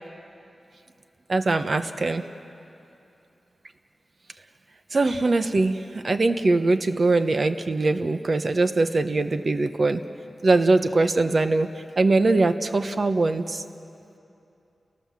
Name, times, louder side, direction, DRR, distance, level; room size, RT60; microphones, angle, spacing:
voice 1, 1.3-2.2 4.9-10.0 10.4-11.7 12.0-13.6, right 3 dB, 45° right, 9 dB, 0.9 m, -22 dB
30.0 x 18.5 x 7.5 m, 2.7 s
wide cardioid pair, 130°, 0 cm